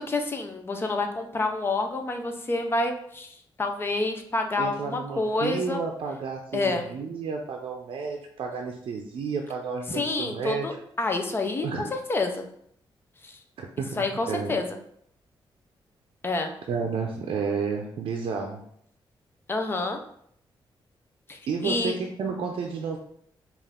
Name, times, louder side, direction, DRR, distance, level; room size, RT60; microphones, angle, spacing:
voice 1, 0.0-5.8 6.5-6.8 9.9-12.4 13.2-13.4 14.0-14.8 16.2-16.5 19.5-20.0 21.3-22.0, left 2 dB, 25° left, 5 dB, 0.5 m, -28 dB
voice 2, 4.6-10.7 11.6-11.9 13.6-14.6 16.7-18.6 21.5-23.0, right 5 dB, 75° right, 1 dB, 0.5 m, -31 dB
5.3 x 2.5 x 3.6 m, 0.68 s
wide cardioid pair, 160°, 9 cm